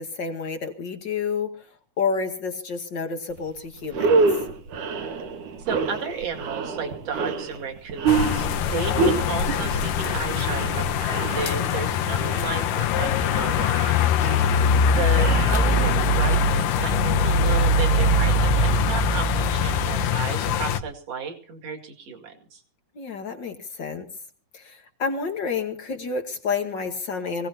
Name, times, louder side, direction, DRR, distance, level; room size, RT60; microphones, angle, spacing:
voice 1, 0.0-1.7 2.0-4.3 14.4-14.7 22.9-24.1 24.5-27.5, left 5 dB, 50° left, 5 dB, 1.4 m, -29 dB
sound 1, 3.4-3.5 3.8-16.2, right 4 dB, 75° right, 3.0 m, -28 dB
voice 2, 5.6-14.6 14.9-22.6, right 6 dB, 50° right, 4 dB, 3.0 m, -33 dB
sound 2, 8.1-20.8, left 4 dB, 90° left, 2.5 m, -22 dB
24.5 x 17.0 x 2.8 m, 0.40 s
omnidirectional pair, 3.7 m